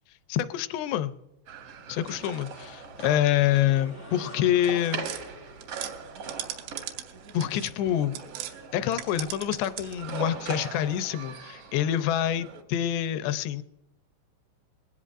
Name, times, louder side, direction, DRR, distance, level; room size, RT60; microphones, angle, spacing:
voice 1, 0.3-1.1 1.9-5.1 7.3-8.2 8.7-13.6, left 11 dB, 80° left, 12 dB, 2.6 m, -26 dB
sound 1, 1.5-12.6, right 5 dB, 75° right, 1.4 m, -41 dB
sound 2, 2.8-7.4, equal, 65° left, 0.3 m, -51 dB
sound 3, 5.0-8.6 8.9-10.1, right 12 dB, 90° right, 3.3 m, -39 dB
20.5 x 16.0 x 2.5 m, 0.90 s
omnidirectional pair, 5.2 m